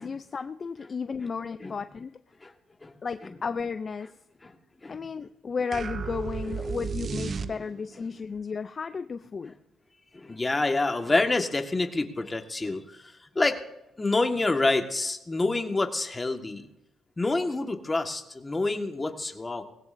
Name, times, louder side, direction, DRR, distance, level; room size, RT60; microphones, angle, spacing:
voice 1, 0.0-2.2 3.0-4.1 4.9-9.5, left 5 dB, 40° left, 11 dB, 0.5 m, -33 dB
sound 1, 5.7-8.0, right 5 dB, 45° right, 0.5 m, -33 dB
voice 2, 10.1-13.6 14.0-16.7 17.2-19.6, left 2 dB, 20° left, 5 dB, 1.6 m, -27 dB
19.5 x 16.5 x 2.6 m, 0.85 s
cardioid pair, 90°, 0 cm